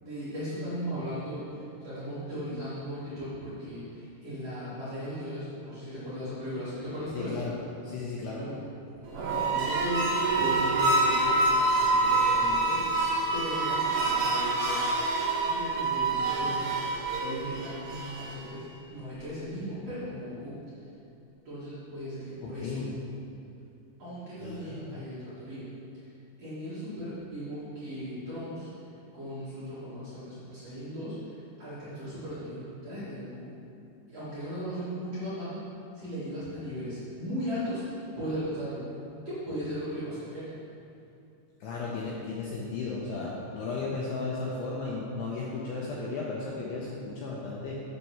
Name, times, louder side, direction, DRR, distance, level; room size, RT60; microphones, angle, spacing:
voice 1, 0.0-7.4 8.4-8.6 9.1-13.0 13.3-14.9 15.4-16.7 17.2-20.6 21.5-22.8 24.0-25.7 25.9-26.1 26.4-28.7 29.1-33.5 34.1-35.6 35.9-37.8 38.2-38.8 39.2-40.6, equal, 50° right, -12 dB, 2.0 m, -37 dB
voice 2, 7.1-7.5 7.8-8.4 22.4-22.9 24.4-25.0 41.6-47.7, left 3 dB, 80° left, -4 dB, 2.4 m, -35 dB
sound 1, 9.1-18.5, right 2 dB, 75° right, 2.3 m, -26 dB
9.7 x 4.3 x 5.9 m, 2.6 s
omnidirectional pair, 5.7 m